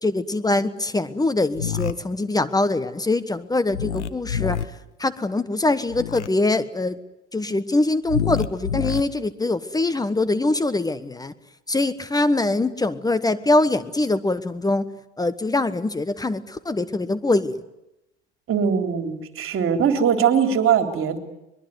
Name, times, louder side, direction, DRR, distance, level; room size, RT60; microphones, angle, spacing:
voice 1, 0.0-4.6 5.0-7.0 7.3-11.3 11.7-14.9 15.2-17.6, left 2 dB, 10° left, 13 dB, 1.3 m, -23 dB
sound 1, 1.5-1.9 3.7-4.6 5.9-6.3 8.1-9.0, left 8 dB, 85° left, 1.3 m, -26 dB
voice 2, 18.5-21.2, right 7 dB, 40° right, 6 dB, 3.8 m, -21 dB
23.5 x 22.5 x 9.6 m, 0.91 s
hypercardioid pair, 80°, 34 cm